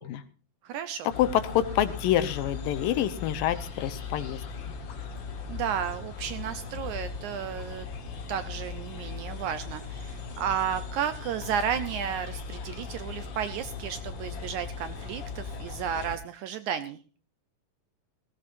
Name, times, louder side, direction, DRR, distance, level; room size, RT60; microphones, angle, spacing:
voice 1, 0.6-1.1 5.5-7.9 8.3-17.0, right 8 dB, 75° right, 11 dB, 1.9 m, -33 dB
sound 1, 1.1-16.2, left 5 dB, 55° left, 1.3 m, -38 dB
voice 2, 1.2-4.4, left 11 dB, 75° left, 12 dB, 2.5 m, -27 dB
18.5 x 16.0 x 2.6 m, 0.37 s
omnidirectional pair, 4.1 m